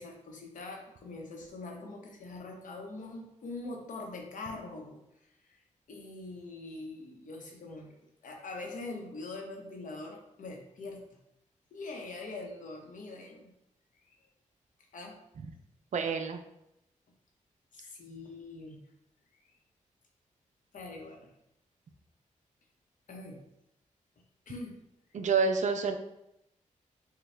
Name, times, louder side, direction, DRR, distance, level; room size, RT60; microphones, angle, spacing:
voice 1, 0.0-5.0 5.5-5.6 5.9-7.9 8.2-11.0 11.7-13.5 14.0-14.1 14.9-15.2 17.7-18.8 20.7-21.3 23.1-23.4 24.5-24.8, left 2 dB, 75° left, 1 dB, 0.9 m, -43 dB
voice 2, 15.9-16.4 25.1-26.0, right 5 dB, 65° right, 6 dB, 0.5 m, -28 dB
6.6 x 2.3 x 3.3 m, 0.83 s
cardioid pair, 80°, 13 cm